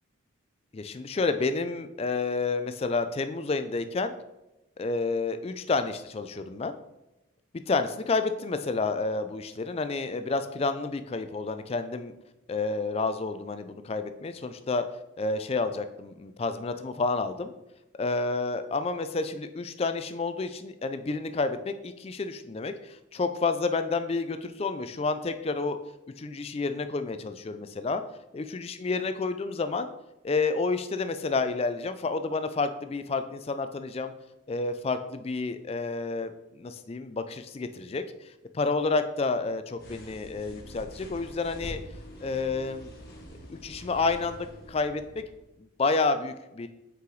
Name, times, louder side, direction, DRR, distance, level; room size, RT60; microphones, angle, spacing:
voice 1, 0.7-4.1 4.8-6.7 7.7-12.1 12.5-14.8 15.2-17.5 18.0-25.8 26.2-28.0 28.3-29.9 30.2-34.1 34.5-41.8 42.2-42.9 43.5-45.2 45.8-46.7, left 3 dB, 30° left, 10 dB, 0.3 m, -30 dB
sound 1, 39.8-45.5, equal, 50° left, 1.3 m, -45 dB
5.5 x 4.8 x 3.9 m, 0.95 s
head